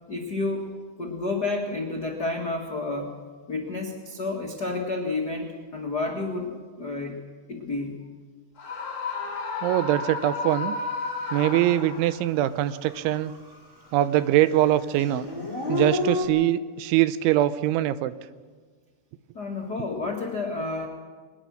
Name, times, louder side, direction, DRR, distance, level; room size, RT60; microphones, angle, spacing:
voice 1, 0.1-3.2 3.5-7.2 7.5-7.9 19.3-20.9, left 3 dB, 80° left, -1 dB, 0.9 m, -30 dB
Screaming, 8.6-12.3, left 4 dB, 45° left, 3.7 m, -32 dB
voice 2, 9.6-10.8 11.3-13.3 13.9-15.3 15.7-18.1, right 13 dB, 80° right, 14 dB, 3.0 m, -23 dB
Dog / Siren, 11.9-12.0 12.5-13.9 14.1-16.2, left 2 dB, 5° right, 3.6 m, -30 dB
22.0 x 21.0 x 6.4 m, 1.5 s
omnidirectional pair, 5.5 m